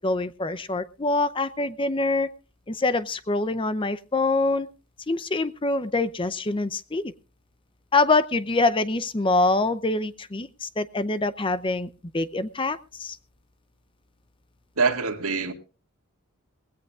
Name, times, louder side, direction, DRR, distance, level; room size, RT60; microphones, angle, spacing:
voice 1, 0.0-2.3 2.7-4.7 5.1-7.1 7.9-13.2, left 3 dB, 25° left, 14 dB, 0.6 m, -25 dB
voice 2, 14.8-15.5, right 4 dB, 75° right, 4 dB, 2.1 m, -24 dB
19.5 x 16.5 x 2.4 m, 0.33 s
head